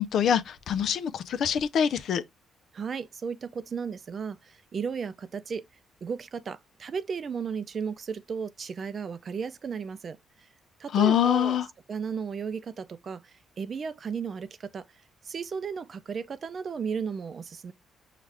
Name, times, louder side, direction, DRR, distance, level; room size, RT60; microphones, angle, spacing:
voice 1, 0.0-2.2 10.9-11.7, left 9 dB, 70° left, 0.5 m, -24 dB
voice 2, 2.7-5.6 6.0-10.2 10.8-11.6 11.9-13.2 13.6-14.8 15.3-17.7, right 6 dB, 45° right, 0.5 m, -34 dB
5.6 x 2.4 x 3.3 m
cardioid pair, 90°, 0 cm